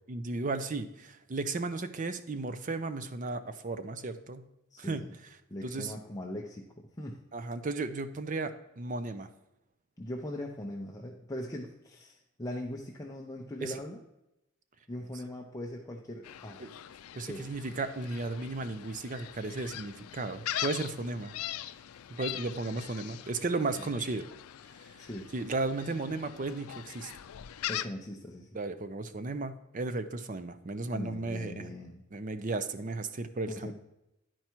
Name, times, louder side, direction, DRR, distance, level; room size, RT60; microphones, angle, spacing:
voice 1, 0.1-4.5 4.8-5.0 5.6-5.9 7.3-9.3 13.6-13.8 16.6-16.7 17.1-21.3 22.1-24.3 24.8-24.9 25.3-27.1 28.5-31.7 32.1-33.7, right 3 dB, 35° right, 11 dB, 0.5 m, -35 dB
voice 2, 4.7-5.1 5.5-7.2 10.0-14.0 14.9-16.6 17.3-17.5 25.0-25.3 27.7-28.5 30.9-32.0 33.5-33.7, left 1 dB, 15° left, -1 dB, 0.5 m, -40 dB
Gull seagull, 16.2-27.9, left 12 dB, 90° left, 0.4 m, -41 dB
10.5 x 4.5 x 4.5 m, 0.90 s
head